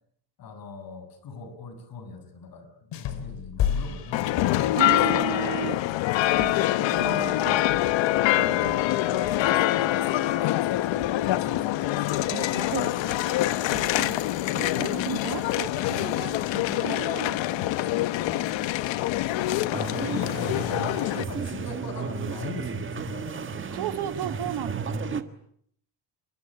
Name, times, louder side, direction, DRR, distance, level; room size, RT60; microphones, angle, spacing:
voice 1, 0.4-4.4 9.7-12.2 19.3-23.8 24.8-25.0, left 4 dB, 50° left, 9 dB, 6.8 m, -41 dB
sound 1, 2.9-5.1, left 9 dB, 65° left, 3.6 m, -31 dB
sound 2, 4.1-21.2, left 15 dB, 85° left, 1.3 m, -25 dB
voice 2, 4.7-5.8 6.4-9.4 12.3-13.3 13.7-14.2 14.5-18.4 23.7-25.3, right 11 dB, 65° right, 8 dB, 2.5 m, -36 dB
sound 3, 19.7-25.2, right 5 dB, 25° right, 1.6 m, -33 dB
28.0 x 23.5 x 8.5 m, 0.67 s
cardioid pair, 165°, 44 cm